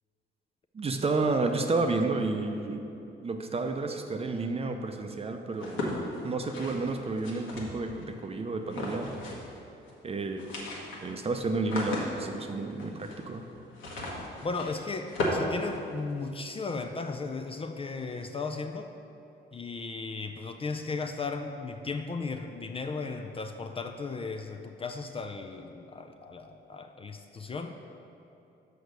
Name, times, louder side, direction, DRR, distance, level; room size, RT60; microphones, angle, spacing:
voice 1, 0.7-2.8 3.2-9.1 10.0-10.4 11.0-13.4, right 3 dB, 30° right, 5 dB, 0.6 m, -31 dB
sound 1, 5.5-8.1 8.7-9.6 9.8-9.9 10.2-16.4, left 1 dB, 85° left, 1.4 m, -36 dB
voice 2, 14.4-18.9 19.5-27.8, left 4 dB, 30° left, 5 dB, 0.4 m, -36 dB
6.4 x 4.6 x 6.6 m, 2.8 s
cardioid pair, 90°, 20 cm